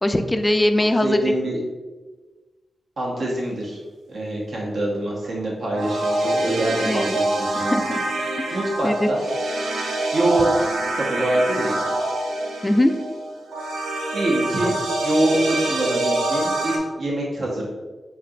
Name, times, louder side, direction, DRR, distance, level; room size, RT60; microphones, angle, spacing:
voice 1, 0.0-1.2 6.8-7.2 7.5-8.0 8.4-8.6 8.8-9.1 12.6-12.9 14.6-14.7, left 1 dB, 20° left, 7 dB, 0.4 m, -21 dB
voice 2, 1.0-1.6 3.0-3.8 4.1-7.8 8.5-9.2 10.1-11.8 14.1-14.7 15.0-17.7, right 1 dB, 70° right, -3 dB, 1.0 m, -24 dB
sound 1, 5.7-16.8, right 2 dB, 85° right, 0.5 m, -25 dB
4.5 x 2.8 x 2.4 m, 1.3 s
cardioid pair, 50°, 0 cm